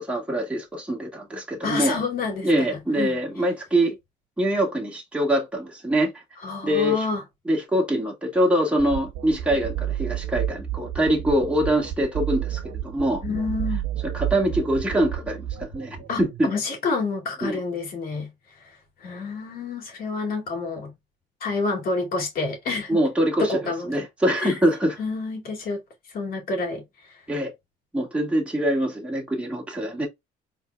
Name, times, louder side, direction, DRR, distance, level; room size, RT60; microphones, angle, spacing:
voice 1, 0.0-2.0 2.4-4.0 4.4-6.1 6.6-7.0 7.5-13.2 14.1-16.5 17.4-17.6 22.9-23.5 23.9-25.0 27.3-27.5 27.9-30.1, right 1 dB, 5° right, 1.9 m, -24 dB
voice 2, 1.6-2.5 3.0-3.2 6.4-7.2 13.2-13.8 16.1-18.3 19.0-20.9 21.4-23.0 23.4-24.0 24.4-24.6 25.0-25.8 26.1-27.2, left 3 dB, 60° left, 2.4 m, -28 dB
sound 1, 8.8-16.4, right 11 dB, 65° right, 0.9 m, -31 dB
4.3 x 3.7 x 2.3 m
cardioid pair, 110°, 17 cm